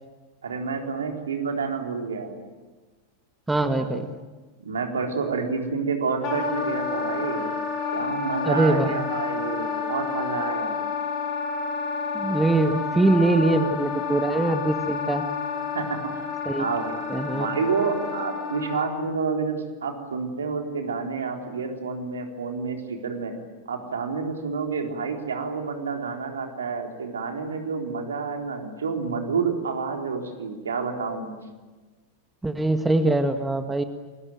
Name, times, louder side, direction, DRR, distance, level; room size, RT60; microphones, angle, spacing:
voice 1, 0.4-2.3 3.7-4.1 4.6-7.5 7.9-10.8 15.7-16.0 16.6-16.9 17.3-23.3 23.7-31.4, right 5 dB, 70° right, 3 dB, 4.0 m, -29 dB
voice 2, 3.5-4.1 8.4-9.0 12.1-15.2 16.4-16.6 17.1-17.5 32.4-33.8, right 2 dB, 10° right, 8 dB, 1.6 m, -22 dB
Wind instrument woodwind instrument, 6.2-19.1, left 5 dB, 40° left, 5.2 m, -30 dB
29.0 x 21.5 x 9.1 m, 1.3 s
figure-of-eight pair, 90°, 0 cm